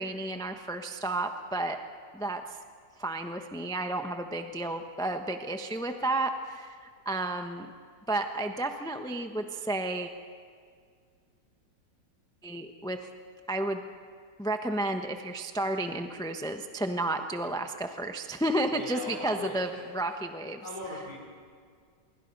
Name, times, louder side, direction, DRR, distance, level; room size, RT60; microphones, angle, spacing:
voice 1, 0.0-1.8 2.1-2.6 3.0-7.7 8.1-10.1 12.4-13.1 13.5-13.8 14.4-20.6, right 1 dB, 5° left, 5 dB, 0.7 m, -32 dB
voice 2, 18.7-19.6 20.0-20.2 20.6-21.1, left 1 dB, 55° left, -4 dB, 4.8 m, -39 dB
25.5 x 23.5 x 5.4 m, 2.1 s
omnidirectional pair, 2.0 m